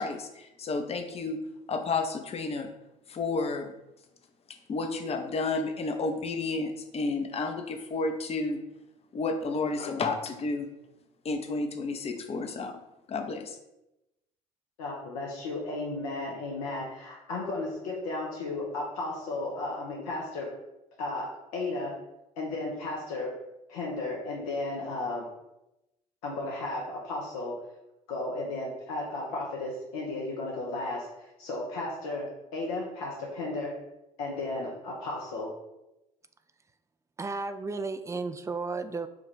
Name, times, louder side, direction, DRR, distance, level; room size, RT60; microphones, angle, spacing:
voice 1, 0.0-1.4 1.7-2.7 3.1-3.7 4.5-8.6 9.1-10.7 11.2-12.7 13.1-13.6, left 3 dB, 35° left, 6 dB, 0.6 m, -31 dB
voice 2, 14.8-20.5 21.0-22.0 22.4-23.3 23.7-25.3 26.2-27.6 28.1-33.7 34.2-35.5, left 2 dB, 75° left, -3 dB, 0.8 m, -34 dB
voice 3, 37.2-39.1, right 3 dB, 15° right, 10 dB, 0.3 m, -33 dB
4.9 x 2.4 x 3.1 m, 0.92 s
hypercardioid pair, 60°, 18 cm